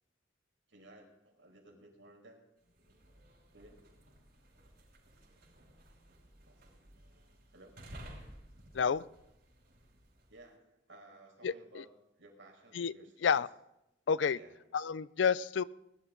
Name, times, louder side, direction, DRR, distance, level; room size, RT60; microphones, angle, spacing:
voice 1, 0.7-2.4 3.5-3.8 6.4-6.7 7.5-7.8 10.3-13.4 14.3-14.6, right 2 dB, 80° right, 0 dB, 5.0 m, -57 dB
sound 1, 2.6-10.4, equal, 55° right, 5.6 m, -55 dB
voice 2, 11.4-11.8 12.7-12.9 13.2-13.5 14.1-14.4 14.7-15.6, left 6 dB, 70° left, 19 dB, 0.4 m, -30 dB
20.5 x 12.0 x 3.9 m, 0.88 s
head